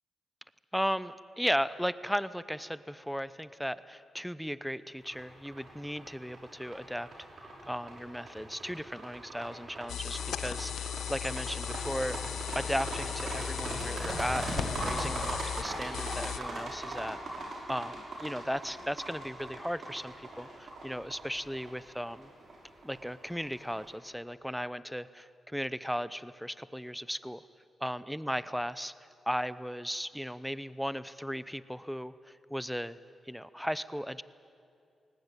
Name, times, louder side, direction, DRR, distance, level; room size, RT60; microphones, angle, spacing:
voice 1, 0.7-7.1 7.6-12.2 12.5-17.2 17.7-22.3 22.8-27.4 27.8-28.9 29.3-33.0 33.3-34.2, equal, ahead, 16 dB, 0.8 m, -36 dB
sound 1, 5.1-23.9, right 1 dB, 65° right, 5.9 m, -40 dB
sound 2, 9.9-16.4, left 10 dB, 85° left, 0.6 m, -37 dB
20.5 x 19.5 x 9.1 m, 2.4 s
supercardioid pair, 50°, 0 cm